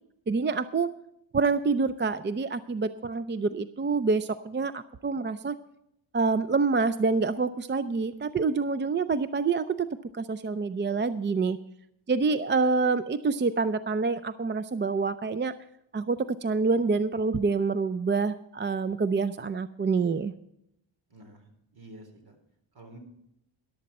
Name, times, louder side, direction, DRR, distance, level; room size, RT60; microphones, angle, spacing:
voice 1, 0.3-0.9 1.3-5.5 6.1-9.9 10.1-11.6 12.1-15.5 15.9-20.3, right 4 dB, 25° right, 13 dB, 0.5 m, -27 dB
voice 2, 21.1-22.4 22.7-23.0, right 1 dB, 50° right, 6 dB, 3.9 m, -49 dB
13.5 x 12.0 x 4.2 m, 0.78 s
cardioid pair, 90°, 47 cm